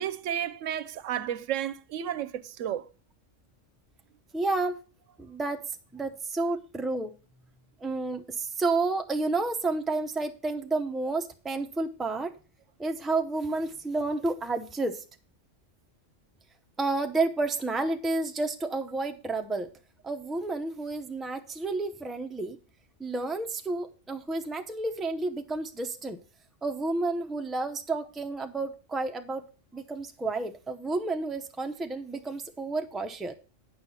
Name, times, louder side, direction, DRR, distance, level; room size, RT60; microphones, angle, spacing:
voice 1, 0.0-2.8, right 10 dB, 80° right, 1.0 m, -32 dB
voice 2, 4.3-4.8 5.2-5.6 5.9-7.1 7.8-12.3 12.8-15.0 16.8-19.7 20.0-22.6 23.0-26.2 26.6-29.4 29.7-33.3, right 3 dB, ahead, 0.6 m, -30 dB
8.9 x 5.7 x 5.6 m
omnidirectional pair, 1.3 m